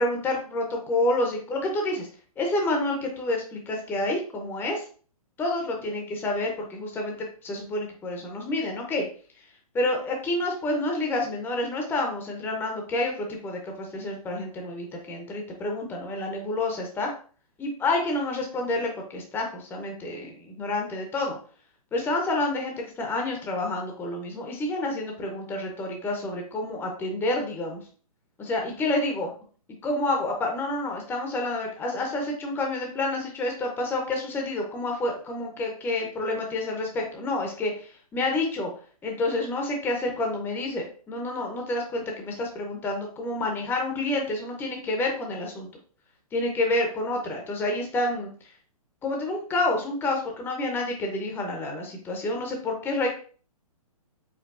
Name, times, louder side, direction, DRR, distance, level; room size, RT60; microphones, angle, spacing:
voice 1, 0.0-2.1 2.4-4.8 5.4-9.0 9.7-17.1 17.6-21.4 21.9-27.8 28.4-29.3 29.8-38.7 39.0-45.7 46.3-48.3 49.0-53.1, left 2 dB, 10° left, 1 dB, 0.7 m, -28 dB
4.7 x 3.4 x 2.5 m, 0.41 s
hypercardioid pair, 135°, 19 cm